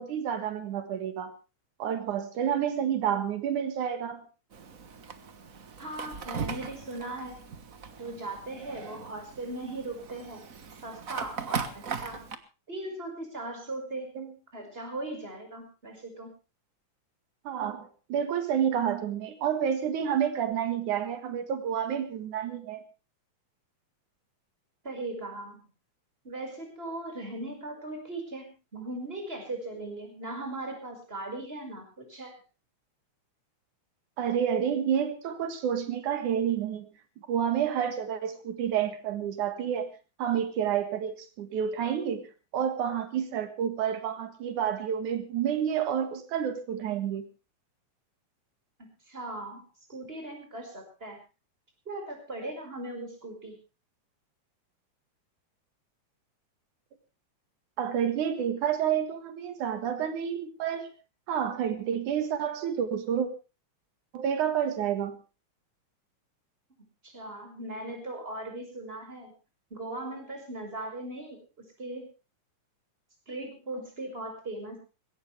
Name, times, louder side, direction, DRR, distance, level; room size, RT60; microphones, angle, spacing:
voice 1, 0.0-1.3 1.8-4.2 14.2-14.3 17.4-22.8 34.2-36.9 37.3-39.9 40.2-42.2 42.5-47.3 57.8-60.9 61.3-63.3 64.1-65.2, right 8 dB, 90° right, 9 dB, 3.1 m, -29 dB
Fire, 4.5-12.4, right 6 dB, 45° right, 1.1 m, -39 dB
voice 2, 5.8-7.4 8.0-10.4 10.8-12.3 12.7-14.1 14.5-16.3 24.8-25.7 26.2-32.4 48.8-49.6 49.9-51.2 51.9-53.6 67.0-69.3 69.7-71.4 71.8-72.1 73.3-74.8, right 2 dB, 20° right, 4 dB, 5.5 m, -38 dB
20.5 x 17.5 x 3.3 m, 0.31 s
omnidirectional pair, 3.4 m